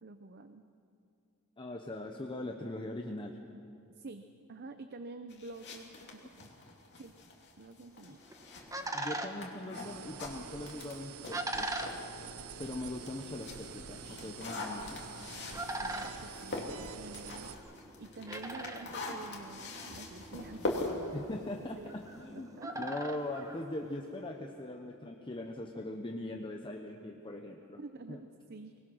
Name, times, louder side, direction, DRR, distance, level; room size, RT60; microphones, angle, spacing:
voice 1, 0.0-0.6 3.9-6.5 7.0-7.2 7.6-8.2 15.5-17.5 18.0-21.9 22.3-23.0 27.8-28.8, right 3 dB, 50° right, 9 dB, 0.7 m, -48 dB
voice 2, 1.6-3.4 8.9-11.7 12.6-15.0 21.1-27.8 28.1-28.2, left 1 dB, 25° left, 3 dB, 0.9 m, -41 dB
sound 1, 5.3-12.1 12.5-22.2, left 2 dB, 50° left, 2.8 m, -43 dB
sound 2, 8.0-24.3, right 1 dB, 15° right, 1.2 m, -43 dB
sound 3, 9.7-17.6, right 6 dB, 80° right, 0.8 m, -47 dB
23.5 x 19.5 x 6.2 m, 2.6 s
head